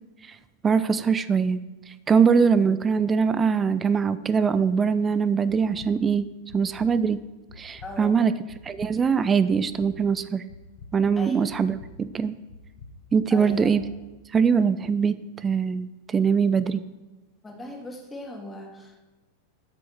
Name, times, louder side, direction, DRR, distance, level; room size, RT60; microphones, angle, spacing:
voice 1, 0.6-1.6 2.1-6.3 6.5-7.2 7.6-8.3 8.6-10.4 10.9-12.3 13.1-13.8 14.3-15.1 15.4-16.8, right 6 dB, 20° right, 14 dB, 0.4 m, -22 dB
sound 1, 5.5-5.9 6.5-6.9 7.5-7.9 8.5-8.9 9.5-9.9 10.5-10.9 11.5-11.9 12.5-12.9 13.5-13.9, left 5 dB, 40° left, 1.7 m, -45 dB
voice 2, 7.8-8.2 11.2-11.5 13.3-13.7 17.4-19.0, left 2 dB, 15° left, 2 dB, 1.8 m, -39 dB
8.8 x 6.2 x 6.0 m, 1.1 s
figure-of-eight pair, 90°, 0 cm